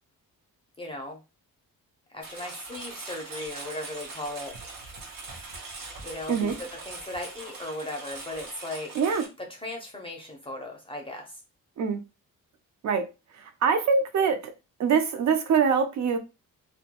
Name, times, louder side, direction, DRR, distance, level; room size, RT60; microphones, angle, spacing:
voice 1, 0.8-1.2 2.1-4.5 6.0-8.9 9.4-11.4, left 1 dB, 15° left, 0.4 m, -37 dB
Engine, 2.2-9.3, right 3 dB, 75° right, 0.8 m, -42 dB
voice 2, 8.9-9.3 11.8-12.0 12.8-13.1 13.6-14.5 14.8-16.2, right 6 dB, 55° right, 0.4 m, -23 dB
2.2 x 2.2 x 2.7 m
wide cardioid pair, 170°, 34 cm